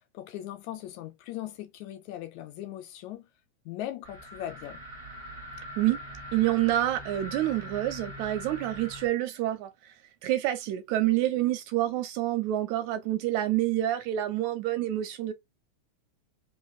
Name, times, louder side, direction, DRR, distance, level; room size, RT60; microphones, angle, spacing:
voice 1, 0.1-3.3 3.7-4.8, left 13 dB, 80° left, 1.7 m, -39 dB
sound 1, 4.0-9.1, equal, 20° right, 1.3 m, -42 dB
voice 2, 6.3-9.9 10.2-15.3, right 14 dB, 80° right, 1.7 m, -27 dB
3.8 x 3.8 x 2.3 m
omnidirectional pair, 3.5 m